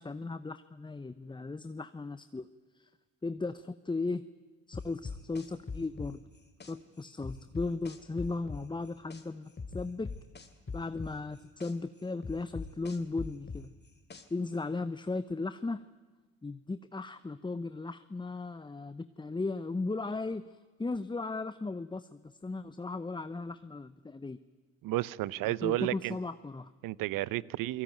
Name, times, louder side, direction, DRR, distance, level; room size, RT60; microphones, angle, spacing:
voice 1, 0.0-2.5 2.7-2.9 3.2-4.2 4.7-6.2 6.7-10.1 10.7-13.7 14.3-15.8 16.4-24.4 25.4-26.7, left 3 dB, 15° left, 13 dB, 0.8 m, -36 dB
sound 1, 4.7-6.7 7.2-9.2 9.6-11.7 12.2-14.5, left 4 dB, 30° left, 2.7 m, -41 dB
voice 2, 24.8-26.2 26.8-27.8, right 17 dB, 65° right, 21 dB, 0.8 m, -32 dB
28.5 x 18.5 x 9.1 m, 1.3 s
hypercardioid pair, 55°, 35 cm